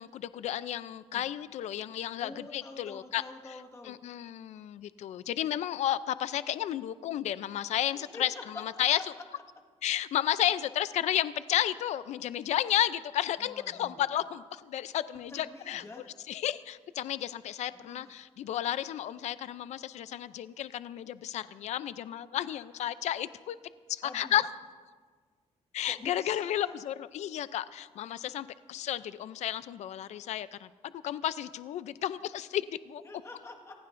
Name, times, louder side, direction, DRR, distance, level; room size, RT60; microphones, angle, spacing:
voice 1, 0.0-3.2 3.8-9.0 9.8-15.8 16.3-23.6 23.9-24.5 25.7-33.0, left 11 dB, 75° left, 14 dB, 0.5 m, -32 dB
voice 2, 2.2-4.0 8.1-8.8 9.1-9.2 13.4-14.0 15.3-16.1 17.7-18.2 24.0-24.4 25.8-26.7 33.0-33.8, left 2 dB, 25° left, 2 dB, 1.6 m, -47 dB
28.5 x 15.5 x 2.6 m, 1.5 s
cardioid pair, 160°, 12 cm